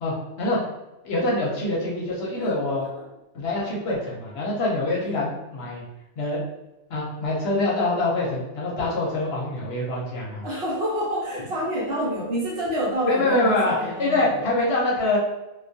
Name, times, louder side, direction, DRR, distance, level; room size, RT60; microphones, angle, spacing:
voice 1, 0.0-0.6 1.0-2.9 3.3-5.8 6.2-6.4 6.9-10.5 13.1-15.2, left 2 dB, 65° left, -4 dB, 0.8 m, -25 dB
voice 2, 10.4-14.4, equal, 60° right, -5 dB, 0.9 m, -28 dB
2.2 x 2.2 x 2.6 m, 0.98 s
omnidirectional pair, 1.3 m